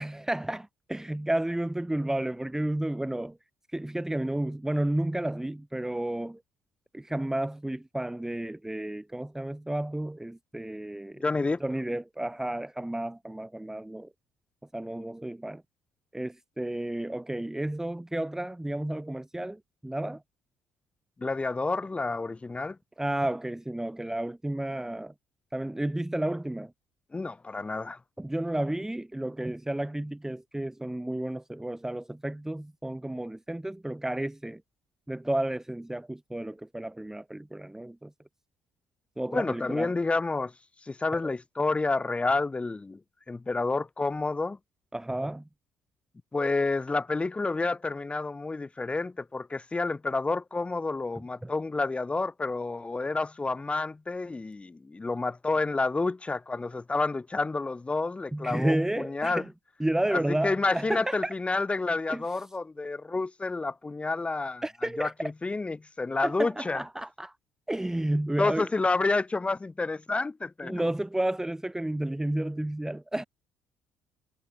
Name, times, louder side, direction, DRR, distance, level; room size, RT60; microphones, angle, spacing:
voice 1, 0.0-3.4 3.7-6.4 6.9-11.2 11.6-14.1 14.7-15.6 16.1-20.2 23.0-25.1 25.5-26.7 28.2-34.6 35.1-38.1 39.2-39.9 41.2-41.3 44.9-45.4 51.4-51.5 58.3-59.5 59.8-61.3 62.1-62.2 64.6-65.1 66.2-67.3 67.7-68.7 70.6-73.2, right 1 dB, 10° right, 3.0 m, -32 dB
voice 2, 11.2-11.6 21.2-22.8 27.1-28.0 39.3-40.5 40.8-43.0 43.3-44.6 46.3-59.5 60.1-64.6 65.0-66.8 68.4-70.8, left 3 dB, 20° left, 1.6 m, -29 dB
figure-of-eight pair, 50°, 6 cm